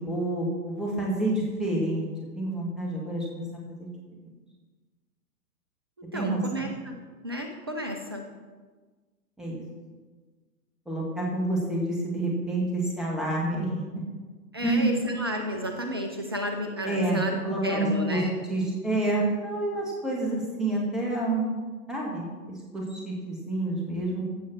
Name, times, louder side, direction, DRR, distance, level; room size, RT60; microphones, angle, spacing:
voice 1, 0.0-2.1 2.3-3.4 3.8-3.9 6.1-6.6 9.4-9.6 10.8-13.8 14.6-14.9 16.8-18.2 18.5-21.5 21.9-24.2, right 2 dB, ahead, -4 dB, 1.8 m, -28 dB
voice 2, 6.0-8.2 14.5-17.4 17.6-18.3, equal, 15° right, 4 dB, 0.4 m, -32 dB
15.5 x 5.6 x 6.1 m, 1.4 s
figure-of-eight pair, 125°, 47 cm